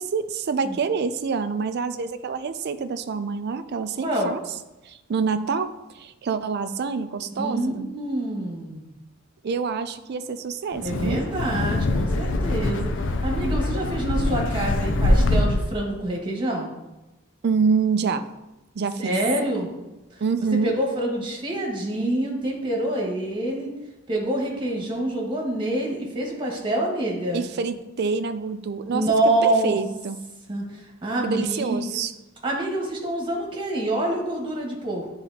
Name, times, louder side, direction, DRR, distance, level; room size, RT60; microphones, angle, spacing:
voice 1, 0.0-4.4 4.8-7.9 9.4-11.2 17.4-18.2 18.7-19.1 20.2-20.7 27.3-29.0 29.4-30.2 31.2-32.1, right 5 dB, 50° right, 10 dB, 0.4 m, -26 dB
voice 2, 4.0-4.3 7.3-8.9 10.8-16.7 19.0-19.7 20.6-23.8 24.1-27.4 28.9-29.8 30.5-32.0 32.4-35.1, right 1 dB, 25° right, -2 dB, 1.6 m, -26 dB
Wind, 10.7-15.8, left 1 dB, 60° left, 0.5 m, -23 dB
10.0 x 3.9 x 2.8 m, 1.0 s
head